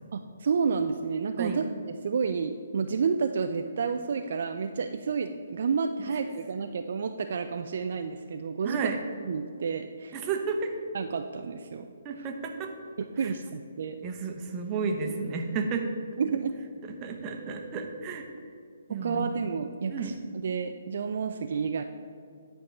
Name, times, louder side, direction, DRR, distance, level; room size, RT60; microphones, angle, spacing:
voice 1, 0.1-1.6 2.0-8.9 9.2-10.2 10.9-11.9 12.2-12.3 13.2-14.0 16.2-16.5 18.9-21.8, right 5 dB, 55° right, 7 dB, 0.4 m, -30 dB
voice 2, 8.6-9.0 10.1-10.7 12.0-12.7 13.2-13.3 14.0-15.8 16.8-18.2 18.9-19.3 19.9-20.1, right 5 dB, 25° right, 3 dB, 0.9 m, -32 dB
10.0 x 4.5 x 5.3 m, 2.3 s
figure-of-eight pair, 135°, 0 cm